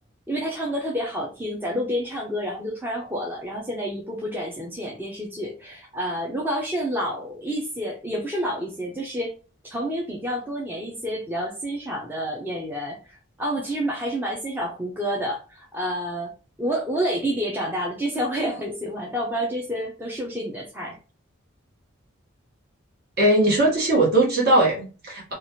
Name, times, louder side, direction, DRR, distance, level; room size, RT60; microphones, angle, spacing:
voice 1, 0.3-9.3 9.6-13.0 13.4-16.3 16.6-21.0, equal, 10° right, -2 dB, 0.5 m, -29 dB
voice 2, 23.2-25.3, right 1 dB, 50° right, -3 dB, 1.4 m, -19 dB
2.9 x 2.4 x 2.9 m, 0.34 s
head